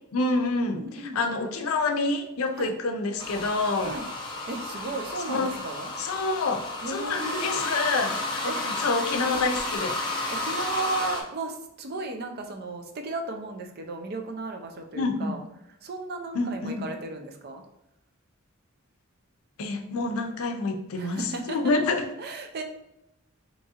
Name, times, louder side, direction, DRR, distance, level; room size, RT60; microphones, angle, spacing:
voice 1, 0.1-4.0 5.3-5.5 6.0-10.0 14.9-15.4 16.3-16.9 19.6-22.1, left 3 dB, 80° left, 5 dB, 0.5 m, -27 dB
voice 2, 0.7-1.2 2.6-2.7 3.8-4.1 4.5-5.9 6.8-7.7 8.5-8.6 9.3-9.5 10.3-15.4 15.8-17.6 21.0-21.6 22.2-22.6, right 3 dB, 50° right, 4 dB, 0.4 m, -35 dB
sound 1, 3.2-11.2, left 2 dB, 20° left, 0.5 m, -32 dB
3.5 x 2.9 x 2.8 m, 0.85 s
head